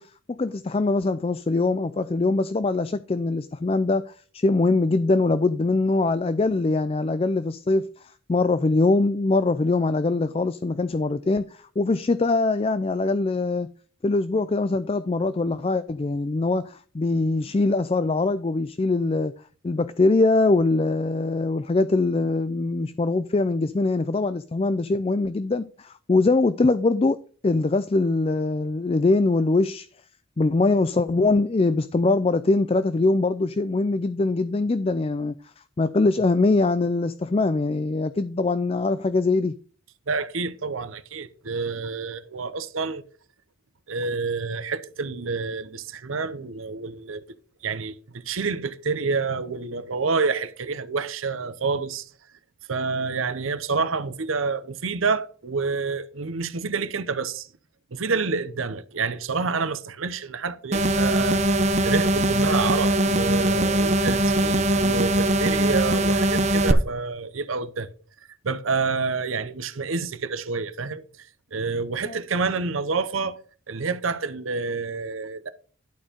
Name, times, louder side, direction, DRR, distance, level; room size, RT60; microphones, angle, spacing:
voice 1, 0.0-13.7 14.0-19.3 19.6-27.2 27.4-29.9 30.4-39.5 72.1-72.2, left 3 dB, 30° left, 0.3 m, -23 dB
voice 2, 40.1-43.0 43.9-47.2 47.6-52.1 52.7-57.5 57.9-61.4 61.8-67.9 68.4-73.4 73.7-75.5, right 4 dB, 80° right, 0.8 m, -28 dB
sound 1, 60.7-66.7, right 1 dB, 35° right, 0.7 m, -21 dB
11.5 x 4.4 x 5.1 m
head